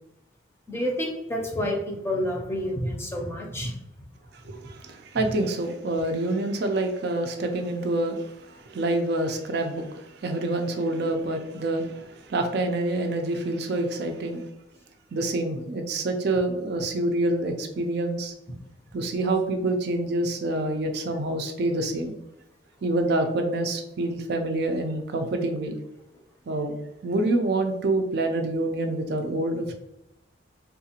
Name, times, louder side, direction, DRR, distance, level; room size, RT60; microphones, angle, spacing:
voice 1, 0.7-3.7, equal, 15° left, 0 dB, 0.6 m, -29 dB
voice 2, 4.3-14.4 15.1-18.3 18.9-22.1 22.8-25.8 26.5-26.7 27.0-29.7, right 2 dB, 55° right, 5 dB, 0.4 m, -27 dB
3.5 x 2.4 x 2.8 m, 0.88 s
head